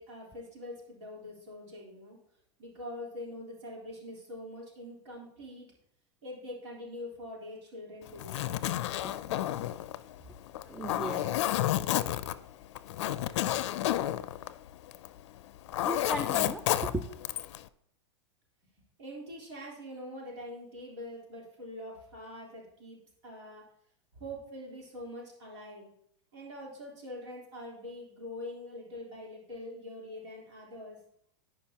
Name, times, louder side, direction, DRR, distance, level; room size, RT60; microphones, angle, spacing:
voice 1, 0.0-2.2 2.6-5.7 6.2-8.6 19.0-23.6 24.1-25.9 26.3-31.0, left 1 dB, 75° right, -3 dB, 3.6 m, -44 dB
Zipper (clothing), 8.1-15.2 15.5-17.6, left 13 dB, 70° left, 0.4 m, -31 dB
voice 2, 10.7-11.5 15.8-17.0, right 1 dB, 5° right, 6 dB, 0.3 m, -36 dB
15.0 x 5.1 x 2.9 m, 0.71 s
supercardioid pair, 145°, 15 cm